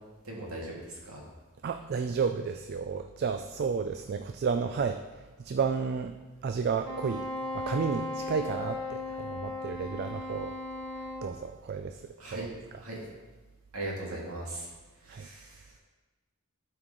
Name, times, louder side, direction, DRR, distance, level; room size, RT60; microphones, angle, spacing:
voice 1, 0.2-1.2 10.0-10.2 12.2-12.5 12.8-13.0 13.7-14.7 15.0-15.8, right 1 dB, 85° right, -3 dB, 2.2 m, -39 dB
voice 2, 1.6-7.3 7.5-10.5 11.2-12.5 15.1-15.3, right 5 dB, 45° right, 7 dB, 0.3 m, -32 dB
Wind instrument woodwind instrument, 6.8-11.3, left 2 dB, 50° left, 1.5 m, -37 dB
12.5 x 4.7 x 3.8 m, 1.2 s
head